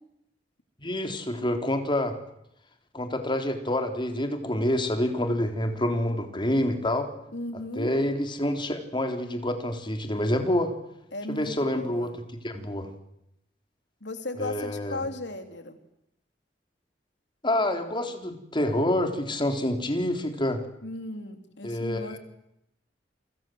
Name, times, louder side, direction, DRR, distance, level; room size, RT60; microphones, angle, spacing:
voice 1, 0.8-2.2 2.9-7.1 7.8-10.7 11.3-12.1 12.4-12.9 14.4-15.0 17.4-20.6 21.6-22.2, left 1 dB, 25° left, 5 dB, 3.7 m, -27 dB
voice 2, 7.3-7.9 11.1-12.1 14.0-15.8 20.8-22.2, left 2 dB, 75° left, 7 dB, 3.3 m, -36 dB
30.0 x 25.0 x 7.9 m, 0.82 s
head